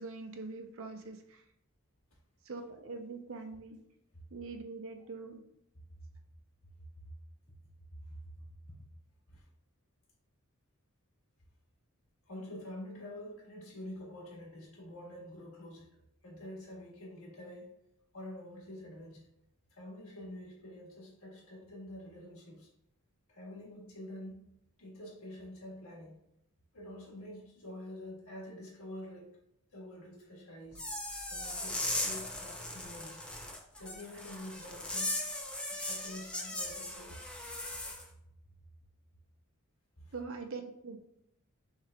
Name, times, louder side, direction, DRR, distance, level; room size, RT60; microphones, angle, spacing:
voice 1, 0.0-1.4 2.4-3.8 4.3-5.4 40.1-41.0, right 4 dB, 60° right, 6 dB, 0.6 m, -43 dB
voice 2, 8.0-8.3 8.6-8.7 9.3-9.5 12.2-16.0 16.2-17.7 18.1-19.3 19.7-22.7 23.3-24.5 24.8-26.2 26.7-29.3 29.7-30.8 31.3-33.2 33.8-35.2 35.7-37.2 40.0-40.1, left 1 dB, 65° left, -3 dB, 1.6 m, -47 dB
sound 1, 30.7-38.0, left 1 dB, 5° left, 0.5 m, -38 dB
6.3 x 3.3 x 2.3 m, 0.76 s
head